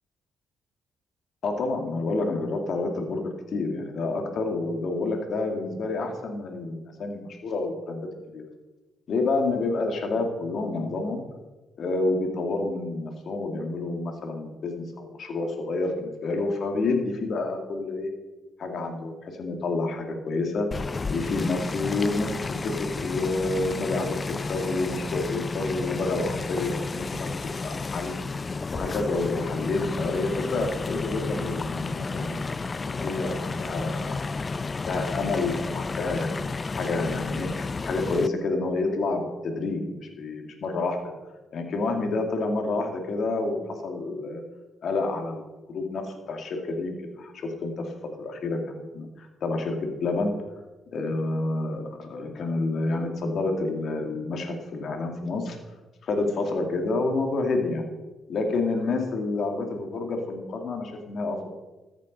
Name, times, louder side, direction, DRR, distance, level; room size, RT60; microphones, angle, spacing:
voice 1, 1.4-8.1 8.3-8.4 9.1-11.2 11.8-18.1 18.6-20.7 21.1-24.1 24.5-27.3 27.6-28.1 28.7-32.4 32.8-34.5 34.9-41.0 41.5-44.4 44.8-46.0 46.3-50.3 50.9-55.6 56.0-57.8 58.3-61.5, left 3 dB, 60° left, 3 dB, 2.4 m, -29 dB
sound 1, 20.7-38.3, left 4 dB, 30° left, 0.3 m, -32 dB
14.0 x 7.4 x 5.4 m, 1.2 s
cardioid pair, 90°, 0 cm